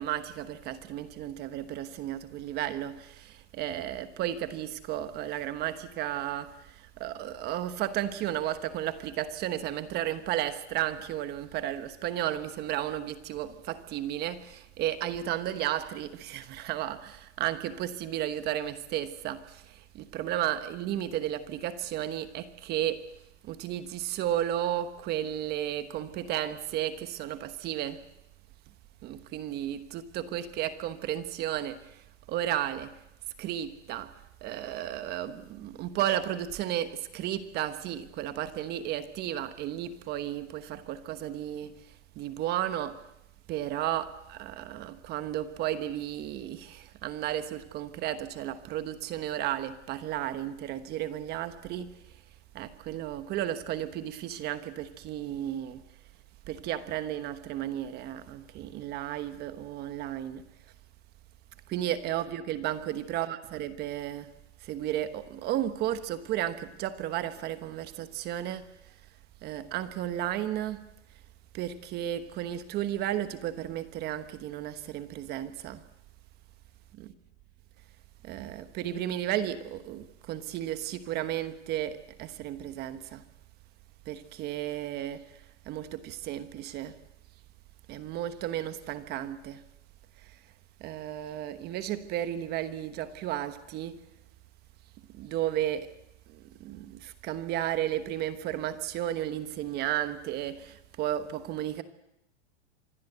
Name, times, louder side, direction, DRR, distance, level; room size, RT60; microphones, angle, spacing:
voice 1, 0.0-23.0 23.4-28.0 29.0-33.0 33.4-34.1 34.4-43.1 43.5-52.0 52.5-55.8 56.5-60.4 61.7-64.3 64.6-68.6 69.4-70.9 71.5-75.8 76.9-77.1 78.2-83.2 84.1-87.0 87.9-89.6 90.2-90.4 90.8-94.0 95.1-95.9 96.3-101.8, right 12 dB, 30° right, 1.2 m, -33 dB
26.0 x 21.0 x 8.1 m
supercardioid pair, 155°, 35 cm